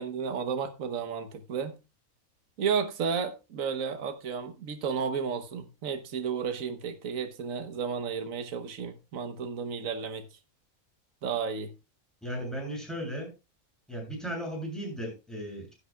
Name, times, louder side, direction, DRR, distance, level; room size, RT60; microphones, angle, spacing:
voice 1, 0.0-1.8 2.6-10.3 11.2-11.7, right 6 dB, 75° right, 1.5 m, -32 dB
voice 2, 12.2-13.3 13.9-15.7, equal, ahead, 7.4 m, -36 dB
16.0 x 10.0 x 2.3 m
omnidirectional pair, 1.4 m